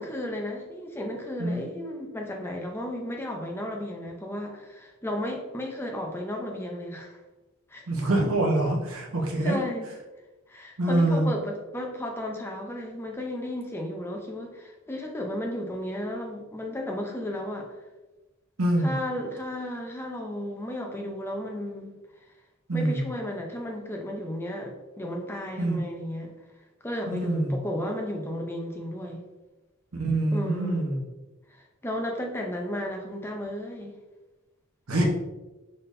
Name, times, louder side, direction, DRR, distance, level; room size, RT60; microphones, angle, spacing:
voice 1, 0.0-7.2 7.7-7.9 9.4-9.9 10.5-17.8 18.8-22.0 22.7-26.3 26.8-29.2 30.3-30.9 31.5-34.0, left 1 dB, 10° left, 1 dB, 0.5 m, -34 dB
voice 2, 7.9-9.6 10.8-11.3 18.6-18.9 22.7-23.0 25.6-25.8 27.1-27.6 30.0-31.0 34.9-35.0, right 1 dB, 90° right, -1 dB, 0.9 m, -25 dB
4.1 x 3.5 x 2.6 m, 1.1 s
head